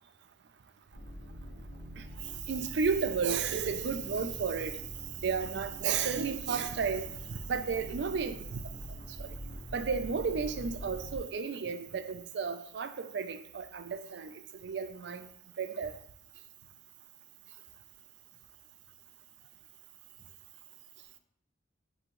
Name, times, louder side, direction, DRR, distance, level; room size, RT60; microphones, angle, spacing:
sound 1, 0.9-11.2, equal, 85° left, 1.2 m, -45 dB
voice 1, 2.5-4.8 5.2-7.1 7.5-8.6 9.2-9.3 9.7-14.3 14.6-15.3 15.6-15.9, right 5 dB, 60° right, 0.4 m, -32 dB
6.0 x 2.7 x 3.0 m
head